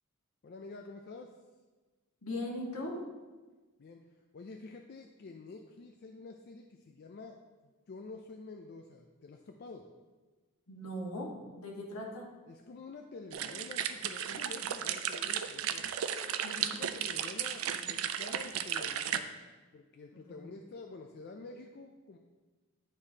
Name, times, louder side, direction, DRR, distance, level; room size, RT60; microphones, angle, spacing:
voice 1, 0.4-1.4 3.8-7.4 7.9-9.9 12.5-16.0 16.6-19.4 19.7-22.2, left 3 dB, 45° left, 3 dB, 0.3 m, -48 dB
voice 2, 2.2-3.0 10.7-12.3 16.4-16.8 20.1-20.5, left 1 dB, 80° left, -1 dB, 1.4 m, -40 dB
sound 1, 13.3-19.2, right 9 dB, 70° right, 0.4 m, -35 dB
9.4 x 4.9 x 2.8 m, 1.3 s
head